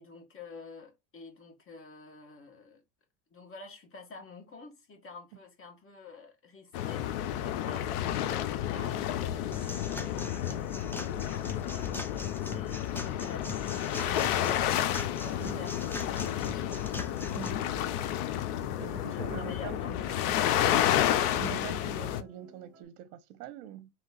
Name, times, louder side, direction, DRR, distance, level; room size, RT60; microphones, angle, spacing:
voice 1, 0.0-2.8 3.3-12.2 12.5-16.9 18.7-20.6, left 4 dB, 25° left, 1.6 m, -49 dB
sound 1, 6.7-22.2, left 11 dB, 70° left, 0.8 m, -31 dB
sound 2, 9.5-17.5, left 2 dB, 5° left, 0.3 m, -42 dB
sound 3, 14.6-22.8, right 9 dB, 30° right, 1.4 m, -50 dB
voice 2, 18.8-20.5 21.3-23.9, right 9 dB, 65° right, 0.7 m, -45 dB
3.8 x 3.2 x 3.8 m
hypercardioid pair, 95°, 48 cm